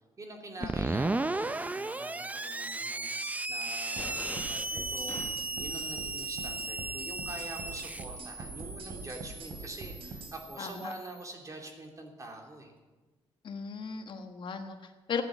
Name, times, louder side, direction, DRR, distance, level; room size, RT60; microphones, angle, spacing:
voice 1, 0.2-3.1 3.5-12.7, right 2 dB, 35° right, 1 dB, 3.3 m, -45 dB
Screech, 0.6-11.1, right 2 dB, 15° right, 0.6 m, -35 dB
sound 1, 4.0-5.7, left 2 dB, 15° left, 1.1 m, -45 dB
sound 2, 4.0-10.3, right 4 dB, 70° right, 3.0 m, -44 dB
voice 2, 10.6-10.9 13.4-15.2, left 6 dB, 55° left, 6 dB, 1.4 m, -37 dB
14.5 x 10.5 x 8.4 m, 1.2 s
cardioid pair, 95°, 10 cm